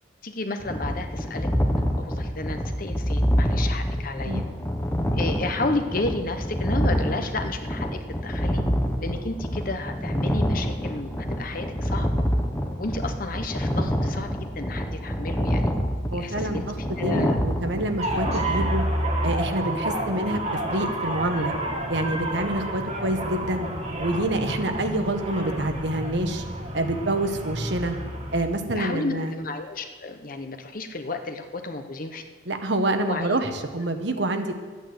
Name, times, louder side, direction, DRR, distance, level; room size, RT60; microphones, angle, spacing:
voice 1, 0.2-1.5 1.9-4.4 5.1-8.6 9.0-12.2 12.8-15.7 16.1-16.6 17.0-17.4 28.8-32.2 33.0-33.3, left 2 dB, 45° left, 6 dB, 1.0 m, -32 dB
sound 1, 0.6-18.7, equal, 10° left, 1.0 m, -26 dB
voice 2, 16.1-16.8 17.0-18.8 19.2-21.5 21.9-23.7 24.0-26.4 26.7-27.9 28.3-29.3 32.5-34.5, right 1 dB, 65° right, 6 dB, 1.2 m, -27 dB
sound 2, 18.0-28.4, right 1 dB, 35° right, 1.9 m, -29 dB
12.0 x 9.0 x 7.9 m, 1.4 s
head